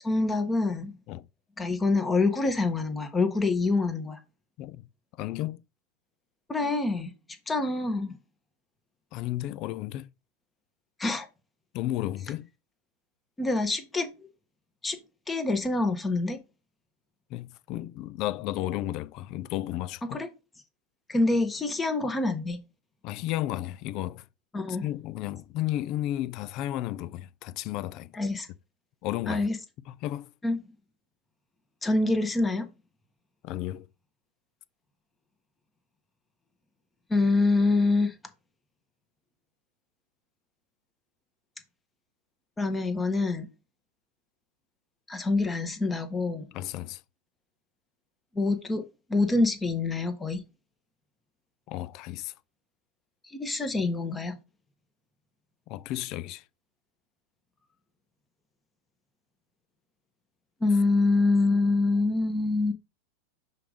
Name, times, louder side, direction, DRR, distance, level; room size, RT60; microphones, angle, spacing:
voice 1, 0.0-0.9 1.6-4.2 6.5-7.1 7.5-8.2 11.0-11.3 13.4-14.1 14.8-15.0 15.3-16.4 20.0-20.3 21.1-22.6 24.5-24.8 28.1-28.5 29.3-29.6 30.4-30.6 31.8-32.7 37.1-38.1 42.6-43.5 45.1-46.5 48.3-48.8 49.1-50.4 53.3-54.4 60.6-62.7, left 3 dB, 15° left, 1.4 m, -26 dB
voice 2, 5.2-5.6 9.1-10.1 11.7-12.5 17.3-20.2 23.0-24.2 24.8-28.1 29.0-29.5 29.9-30.3 33.4-33.9 46.5-47.0 51.7-52.3 55.7-56.4, left 14 dB, 50° left, 0.5 m, -33 dB
5.7 x 3.7 x 5.2 m
hypercardioid pair, 100°, 0 cm